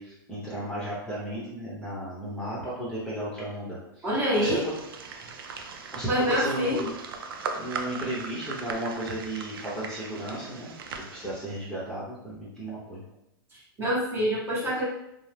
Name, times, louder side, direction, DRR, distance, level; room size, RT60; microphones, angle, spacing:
voice 1, 0.0-4.7 5.9-6.9 7.6-13.0, right 1 dB, 5° left, -8 dB, 0.8 m, -34 dB
voice 2, 4.0-4.6 6.1-6.9 13.8-14.8, equal, 20° right, -6 dB, 1.0 m, -26 dB
sound 1, 4.3-11.6, right 5 dB, 80° right, 0.4 m, -39 dB
2.7 x 2.0 x 3.3 m, 0.86 s
hypercardioid pair, 125°, 12 cm